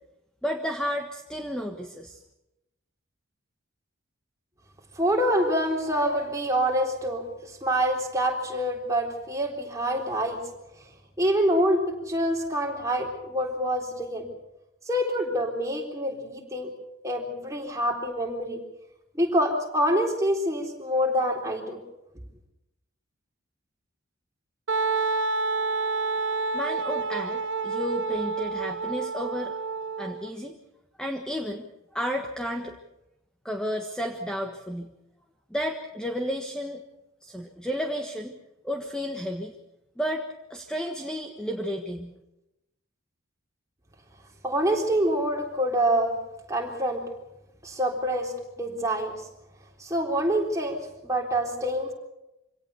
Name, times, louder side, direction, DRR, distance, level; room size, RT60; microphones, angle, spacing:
voice 1, 0.4-2.2 26.5-29.5 30.0-30.5 31.0-32.7 33.4-34.9 35.5-36.8 37.2-38.4 38.6-39.5 40.0-40.2 40.5-42.1, equal, 5° left, 3 dB, 1.4 m, -32 dB
voice 2, 5.0-10.4 11.2-14.2 14.9-16.7 17.0-18.6 19.1-21.8 44.4-46.1 46.5-47.0 47.6-49.1 49.8-50.8 51.0-51.9, equal, 15° right, 0 dB, 3.8 m, -26 dB
Wind instrument woodwind instrument, 24.7-30.3, right 4 dB, 60° right, 0.9 m, -28 dB
25.5 x 17.5 x 6.8 m, 0.92 s
head